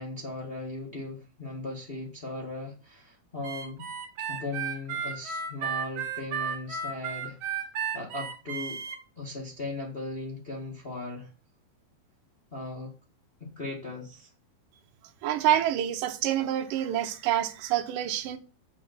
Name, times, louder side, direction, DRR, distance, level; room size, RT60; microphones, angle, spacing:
voice 1, 0.0-3.9 4.3-7.6 7.9-8.8 9.2-11.3 12.5-12.9 13.4-14.3, left 2 dB, 75° left, 0.5 m, -38 dB
Harmonica, 3.4-9.0, right 6 dB, 45° right, 2.1 m, -34 dB
voice 2, 15.2-18.4, right 11 dB, 70° right, 2.3 m, -27 dB
7.6 x 5.0 x 7.2 m
omnidirectional pair, 4.6 m